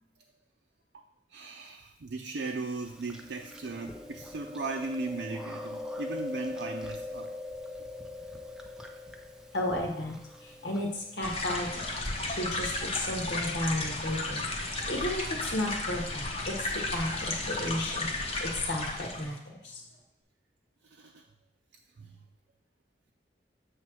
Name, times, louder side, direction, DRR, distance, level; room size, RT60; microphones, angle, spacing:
voice 1, 1.3-7.3 20.9-21.2 22.0-22.2, right 3 dB, 65° right, 1 dB, 0.5 m, -37 dB
Chewing mastication, 2.4-11.4, left 2 dB, 5° right, 0.5 m, -42 dB
voice 2, 9.5-10.1 10.4-11.9 12.3-19.8, left 1 dB, 65° left, 0 dB, 1.5 m, -34 dB
sound 1, 11.2-19.4, left 2 dB, 35° left, 1.0 m, -34 dB
7.4 x 3.2 x 6.2 m, 0.78 s
head